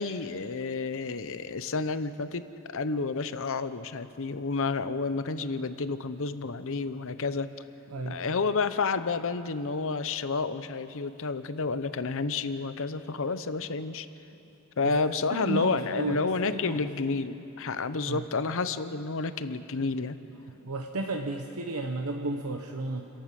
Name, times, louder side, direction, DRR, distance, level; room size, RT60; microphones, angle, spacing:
voice 1, 0.0-2.5 2.7-7.5 8.1-14.1 14.8-20.2, left 4 dB, 65° left, 12 dB, 0.8 m, -30 dB
voice 2, 7.9-8.2 14.8-15.0 15.3-16.8 18.1-18.3 20.6-23.1, right 2 dB, 85° right, 3 dB, 1.0 m, -33 dB
30.0 x 11.5 x 7.6 m, 2.9 s
head